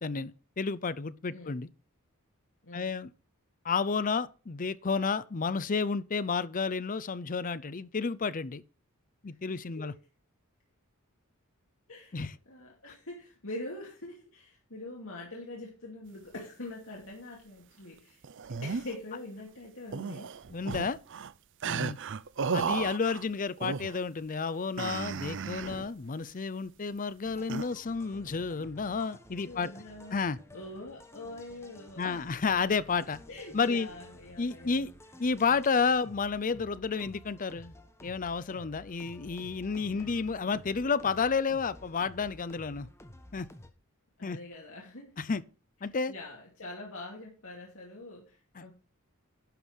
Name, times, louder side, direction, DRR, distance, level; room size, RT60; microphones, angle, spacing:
voice 1, 0.0-1.7 2.7-3.1 3.6-8.6 9.2-9.9 12.1-12.3 20.5-21.0 21.6-22.0 22.5-29.7 30.1-30.4 32.0-33.2 33.5-33.9 34.4-34.9 35.2-37.7 38.0-42.9 43.3-43.5 44.2-44.4 45.2-45.4 45.8-46.1 48.6-48.7, left 5 dB, 40° left, 0.6 m, -31 dB
voice 2, 11.9-18.2 18.6-20.4 28.6-28.7 29.4-30.2 30.5-32.2 33.3-34.8 39.9-40.1 44.2-45.2 46.1-48.7, left 2 dB, 65° left, 2.6 m, -44 dB
sound 1, 18.2-18.9 19.9-21.3 21.6-23.2 23.6-24.0 24.8-25.9 27.5-27.7, right 5 dB, 60° right, 0.6 m, -34 dB
sound 2, 27.2-43.7, left 1 dB, 10° left, 1.2 m, -53 dB
11.5 x 5.5 x 6.2 m
head